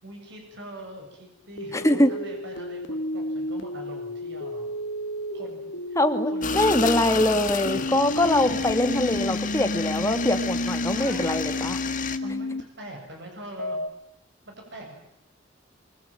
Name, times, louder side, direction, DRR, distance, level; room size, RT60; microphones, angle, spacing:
voice 1, 0.0-4.7 5.3-6.0 6.3-6.8 10.9-11.7 12.2-13.8 14.5-15.0, right 1 dB, 60° right, 2 dB, 7.7 m, -42 dB
sound 1, 1.6-7.0 7.7-12.6 13.6-13.9, left 1 dB, 65° left, 1.7 m, -31 dB
voice 2, 1.7-2.1 6.0-11.8, left 1 dB, 15° left, 7 dB, 2.2 m, -23 dB
sound 2, 6.4-12.2, left 6 dB, 40° left, 1.7 m, -32 dB
25.0 x 24.5 x 9.1 m, 0.78 s
head